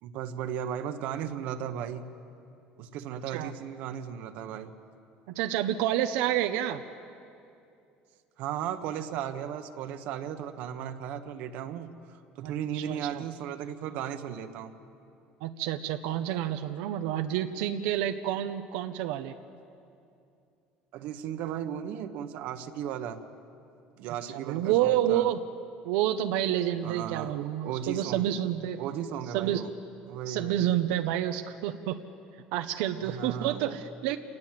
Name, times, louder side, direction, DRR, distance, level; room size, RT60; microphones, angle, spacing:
voice 1, 0.0-2.0 2.8-4.7 8.4-14.7 20.9-23.2 24.0-25.2 26.8-28.3 28.8-29.7 30.1-30.6 33.0-33.8, right 9 dB, 60° right, 8 dB, 1.3 m, -36 dB
voice 2, 5.3-6.8 12.4-13.2 15.4-19.3 24.3-25.4 25.8-28.9 29.3-29.6 30.3-32.0 32.5-34.2, right 12 dB, 90° right, 7 dB, 1.0 m, -29 dB
27.0 x 18.5 x 7.7 m, 2.5 s
cardioid pair, 150°, 3 cm